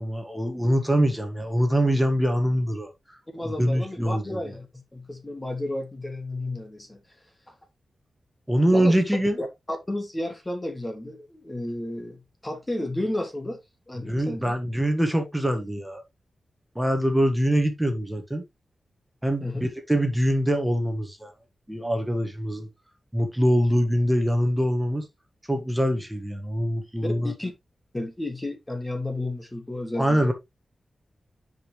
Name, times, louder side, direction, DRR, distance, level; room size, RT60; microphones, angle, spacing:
voice 1, 0.0-2.9 3.4-4.4 8.5-9.4 14.0-16.0 16.7-18.4 19.2-21.3 21.7-22.7 23.1-25.0 25.5-27.3 30.0-30.3, equal, 5° right, 1.7 m, -24 dB
voice 2, 3.3-7.0 8.7-9.0 9.4-12.2 12.4-13.6 13.9-14.5 19.4-19.7 27.0-27.5 27.9-30.3, left 1 dB, 15° left, 1.6 m, -32 dB
9.8 x 5.3 x 3.2 m
wide cardioid pair, 135°, 0 cm